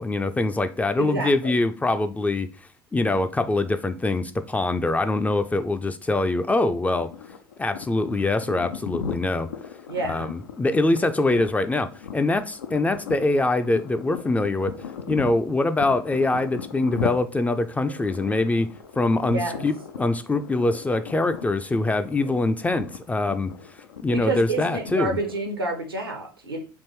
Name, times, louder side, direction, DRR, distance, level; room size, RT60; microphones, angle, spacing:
voice 1, 0.0-2.5 2.9-7.1 7.6-9.5 10.1-14.7 15.1-23.5 24.0-25.2, left 2 dB, 10° left, 0.4 m, -24 dB
voice 2, 1.0-1.6 9.9-10.3 19.3-19.7 24.1-26.6, right 2 dB, 90° right, 0.8 m, -29 dB
sound 1, 7.0-25.5, left 6 dB, 80° left, 0.4 m, -38 dB
3.6 x 2.5 x 4.4 m
figure-of-eight pair, 65°, 12 cm